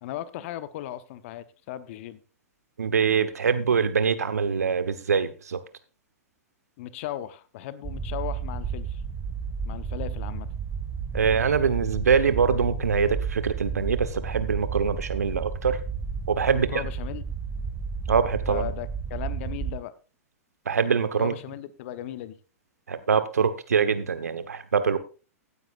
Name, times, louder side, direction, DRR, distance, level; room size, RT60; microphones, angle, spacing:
voice 1, 0.0-2.2 6.8-9.0 9.6-10.5 16.5-17.2 18.5-19.9 21.2-22.4, left 13 dB, 55° left, 14 dB, 1.0 m, -36 dB
voice 2, 2.8-5.6 11.1-15.8 16.3-16.8 18.1-18.7 20.7-21.3 22.9-25.0, right 6 dB, 80° right, 11 dB, 1.1 m, -24 dB
sound 1, 7.8-19.7, right 6 dB, 20° right, 1.9 m, -32 dB
15.5 x 9.5 x 2.5 m, 0.33 s
hypercardioid pair, 105°, 8 cm